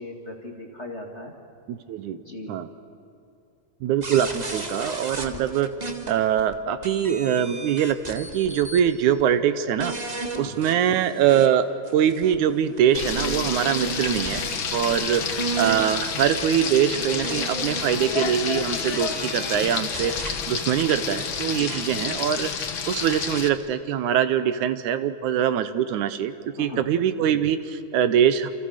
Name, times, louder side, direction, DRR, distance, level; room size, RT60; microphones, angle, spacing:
voice 1, 0.0-1.3 2.1-2.6 5.3-5.5 10.3-10.6 13.8-14.0 14.9-15.3 21.5-21.6 26.6-26.9, left 1 dB, 25° left, 1 dB, 2.0 m, -38 dB
voice 2, 1.7-2.2 2.5-2.7 3.8-5.7 6.1-9.9 10.4-14.4 14.7-15.2 15.6-28.5, right 9 dB, 75° right, 12 dB, 2.2 m, -23 dB
sound 1, 4.0-6.5 6.8-8.9 9.2-9.3 9.8-11.5 11.9-18.1 18.7-20.3 21.4-21.8, right 3 dB, 20° right, 1.0 m, -35 dB
Frying (food), 12.9-23.5, left 6 dB, 50° left, 1.8 m, -29 dB
28.5 x 28.5 x 6.5 m, 2.7 s
omnidirectional pair, 3.6 m